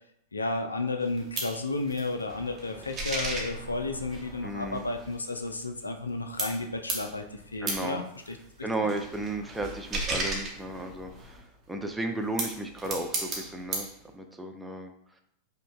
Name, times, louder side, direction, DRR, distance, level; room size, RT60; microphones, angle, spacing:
voice 1, 0.3-8.4, left 3 dB, 75° left, 6 dB, 0.3 m, -32 dB
sound 1, 1.0-6.1 6.4-11.4 12.1-14.0, right 2 dB, 25° right, 0.9 m, -36 dB
voice 2, 4.4-4.8 7.6-8.0 8.6-13.9 14.1-14.9, right 2 dB, 5° right, 3 dB, 0.4 m, -34 dB
5.0 x 2.2 x 2.3 m, 0.74 s
figure-of-eight pair, 90°, 0 cm